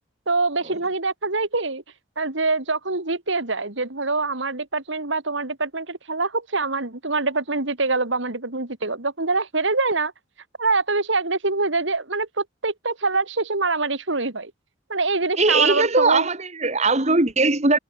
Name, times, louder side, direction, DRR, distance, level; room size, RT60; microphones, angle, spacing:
voice 1, 0.3-1.8 2.2-10.1 10.6-14.5 14.9-16.3, right 3 dB, 70° right, 2.7 m, -24 dB
voice 2, 15.4-17.8, right 3 dB, 35° right, 2.1 m, -19 dB
head